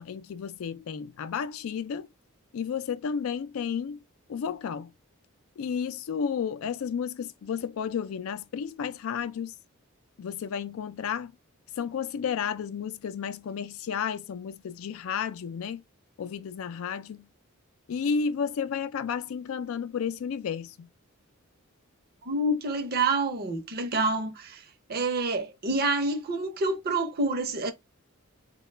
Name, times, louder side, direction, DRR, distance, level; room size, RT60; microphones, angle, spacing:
voice 1, 0.0-2.1 2.5-4.0 4.3-4.9 5.6-9.5 10.2-11.3 11.8-15.8 16.2-17.3 17.9-20.9, left 7 dB, 80° left, 0.4 m, -32 dB
voice 2, 22.2-24.6 24.9-27.7, right 2 dB, 50° right, 0.7 m, -27 dB
3.8 x 2.2 x 3.2 m
head